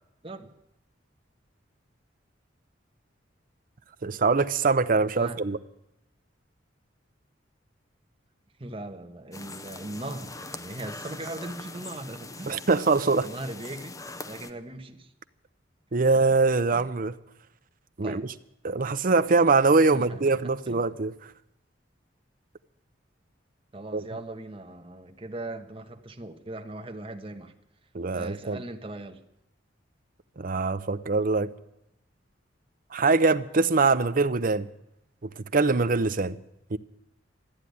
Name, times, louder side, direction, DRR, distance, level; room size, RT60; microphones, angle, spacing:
voice 1, 4.0-5.6 12.5-13.3 15.9-17.2 18.0-18.3 18.6-21.1 23.9-24.0 27.9-28.6 30.4-31.5 32.9-34.7 35.2-36.4 36.7-36.8, right 3 dB, 50° right, 0.7 m, -23 dB
voice 2, 8.6-12.6 13.2-15.1 16.0-16.1 16.7-16.8 18.0-18.3 19.9-20.4 20.7-20.8 23.7-27.5 28.1-29.2, right 2 dB, 30° right, 1.3 m, -39 dB
sound 1, 9.3-14.5, left 3 dB, 20° left, 0.8 m, -42 dB
14.0 x 10.0 x 9.5 m
head